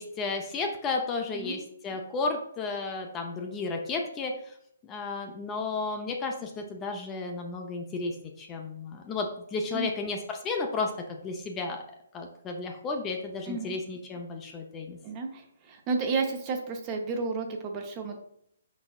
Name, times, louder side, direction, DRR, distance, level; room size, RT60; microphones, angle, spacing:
voice 1, 0.0-4.6 4.8-11.8 12.1-15.0, left 3 dB, 20° left, 3 dB, 0.5 m, -33 dB
voice 2, 13.5-13.8 15.0-18.2, right 4 dB, 25° right, 3 dB, 0.6 m, -32 dB
4.8 x 4.0 x 2.3 m, 0.70 s
hypercardioid pair, 145°, 0 cm